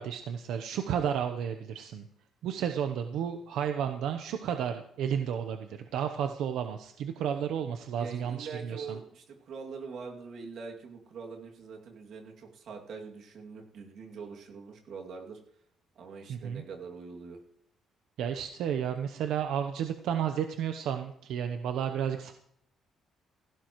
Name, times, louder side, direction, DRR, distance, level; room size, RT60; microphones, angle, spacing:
voice 1, 0.0-2.1 2.4-8.9 16.3-16.6 18.2-22.3, right 8 dB, 85° right, 6 dB, 0.8 m, -32 dB
voice 2, 7.9-15.4 16.0-17.4, right 5 dB, 60° right, 1 dB, 2.5 m, -43 dB
16.0 x 15.5 x 3.1 m, 0.70 s
cardioid pair, 155°, 0 cm